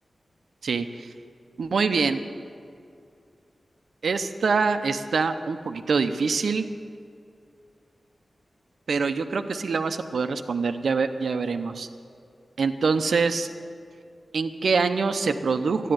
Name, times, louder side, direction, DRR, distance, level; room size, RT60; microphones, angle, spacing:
voice 1, 0.6-1.1 1.6-2.2 4.0-6.6 8.9-11.9 12.6-13.5 14.3-15.9, right 4 dB, 85° right, 8 dB, 0.7 m, -25 dB
13.0 x 11.0 x 7.8 m, 2.4 s
wide cardioid pair, 120°, 0 cm